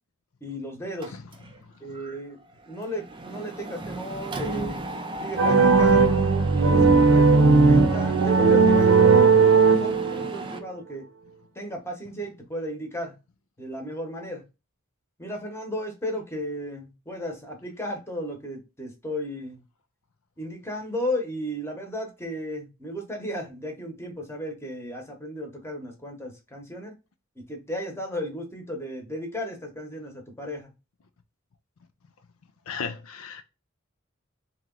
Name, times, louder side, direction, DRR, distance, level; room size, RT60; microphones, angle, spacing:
voice 1, 0.4-1.2 1.8-2.4 2.7-4.8 5.2-11.1 11.5-13.1 13.6-14.4 15.2-19.6 20.4-26.9 27.4-30.7, equal, 10° left, 1.0 m, -34 dB
Mechanisms, 1.0-1.6 1.9-2.2 2.4-10.6, right 2 dB, 25° right, 0.4 m, -36 dB
sound 1, 5.4-10.3, right 4 dB, 70° right, 0.7 m, -17 dB
voice 2, 32.7-33.4, left 6 dB, 85° left, 0.5 m, -34 dB
3.0 x 2.9 x 3.7 m
head